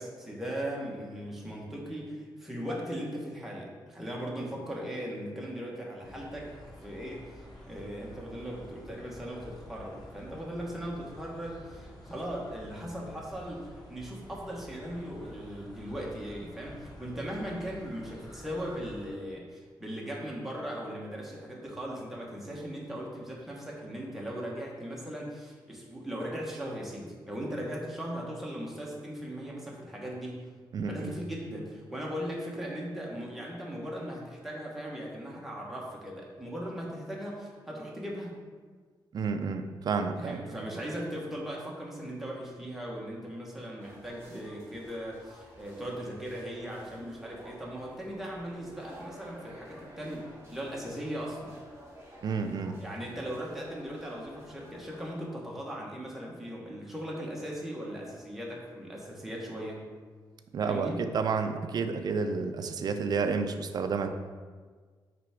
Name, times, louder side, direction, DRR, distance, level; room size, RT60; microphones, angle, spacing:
voice 1, 0.0-6.5 6.8-30.4 30.9-38.3 40.2-50.2 50.5-51.5 52.8-59.8 60.6-61.0, equal, 5° right, -3 dB, 1.2 m, -38 dB
sound 1, 6.0-19.1, equal, 55° left, 1.5 m, -49 dB
voice 2, 30.7-31.2 39.1-40.4 52.2-52.8 60.5-64.1, right 5 dB, 55° right, 8 dB, 0.5 m, -30 dB
sound 2, 43.8-55.2, equal, 30° right, 1.7 m, -52 dB
5.9 x 3.4 x 5.0 m, 1.5 s
wide cardioid pair, 140°, 8 cm